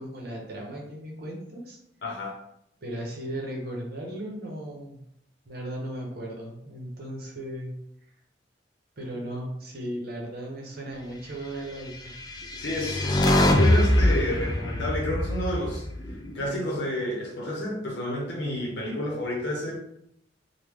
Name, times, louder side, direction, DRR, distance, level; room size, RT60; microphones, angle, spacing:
voice 1, 0.0-1.8 2.8-5.0 5.5-7.7 9.0-12.1, right 1 dB, 55° right, -1 dB, 0.8 m, -36 dB
voice 2, 2.0-2.4 12.6-15.9 16.3-19.7, left 1 dB, 65° left, -2 dB, 0.8 m, -30 dB
sound 1, 12.1-16.5, left 1 dB, 20° left, 0.3 m, -23 dB
3.1 x 2.2 x 3.5 m, 0.75 s
head